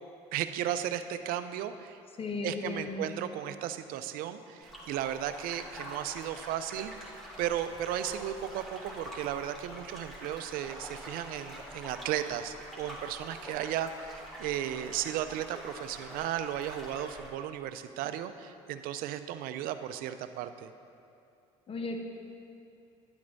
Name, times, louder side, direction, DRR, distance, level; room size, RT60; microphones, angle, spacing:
voice 1, 0.3-2.0 2.4-6.9 7.4-20.7, right 11 dB, 65° right, 11 dB, 0.5 m, -35 dB
voice 2, 2.2-3.1 21.7-22.0, left 3 dB, 35° left, 3 dB, 1.2 m, -35 dB
sound 1, 4.6-17.3, equal, ahead, 2.3 m, -46 dB
10.5 x 8.5 x 4.0 m, 2.6 s
supercardioid pair, 80°, 16 cm